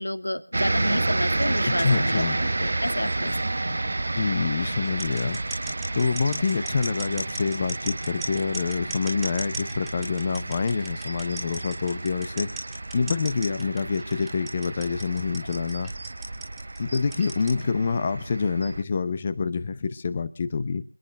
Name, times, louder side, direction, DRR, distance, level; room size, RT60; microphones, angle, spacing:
voice 1, 0.0-2.3 2.6-3.4 3.6-3.8, left 1 dB, 75° left, 10 dB, 2.4 m, -30 dB
sound 1, 0.5-18.8, right 2 dB, 45° right, 0.7 m, -31 dB
voice 2, 1.6-2.4 4.2-5.4 5.9-12.5 12.9-15.9 16.8-20.8, left 5 dB, 20° left, 15 dB, 0.8 m, -26 dB
sound 2, 4.8-17.6, right 1 dB, ahead, 2.3 m, -36 dB
27.0 x 10.5 x 3.4 m, 0.36 s
figure-of-eight pair, 170°, 0 cm